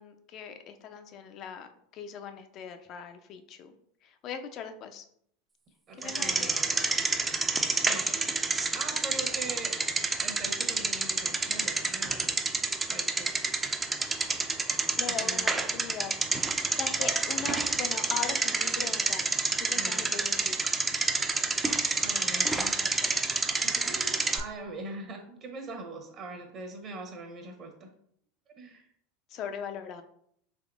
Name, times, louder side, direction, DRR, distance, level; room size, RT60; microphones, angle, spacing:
voice 1, 0.0-3.7 4.0-5.0 6.0-6.5 15.0-16.1 16.8-19.3 19.6-20.6 23.0-23.1 29.3-30.0, left 7 dB, 45° left, 8 dB, 0.4 m, -40 dB
voice 2, 5.9-7.2 7.8-8.2 8.7-9.8 10.1-12.4 12.9-13.3 15.1-15.8 19.7-20.1 22.0-23.3 23.6-27.9 28.6-28.9, right 2 dB, 40° right, 4 dB, 0.8 m, -42 dB
Bicycle, 6.0-24.4, right 3 dB, 15° right, 0.4 m, -29 dB
3.5 x 3.1 x 2.4 m, 0.67 s
hypercardioid pair, 85°, 0 cm